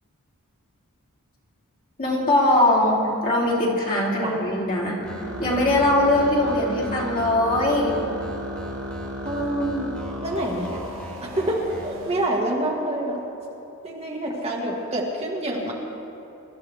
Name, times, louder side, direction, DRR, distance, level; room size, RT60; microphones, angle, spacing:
voice 1, 2.0-3.0 3.2-5.0 5.4-8.0, left 1 dB, 40° left, -5 dB, 3.1 m, -21 dB
sound 1, 5.0-11.9, equal, 5° left, 2.3 m, -40 dB
sound 2, 5.2-12.3, equal, 60° right, 1.4 m, -35 dB
voice 2, 9.2-9.9 10.2-10.8 11.2-13.3 13.8-15.7, right 1 dB, 30° right, -2 dB, 1.8 m, -27 dB
24.5 x 13.0 x 3.5 m, 2.9 s
head